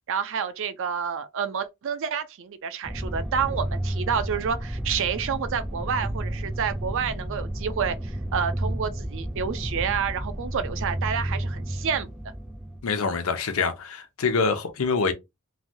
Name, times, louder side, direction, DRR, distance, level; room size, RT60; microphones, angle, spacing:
voice 1, 0.1-12.1, right 7 dB, 60° right, 0.4 m, -29 dB
sound 1, 2.8-12.8, right 1 dB, ahead, 0.4 m, -31 dB
voice 2, 12.8-15.1, left 4 dB, 70° left, 0.6 m, -25 dB
3.2 x 2.2 x 2.6 m
head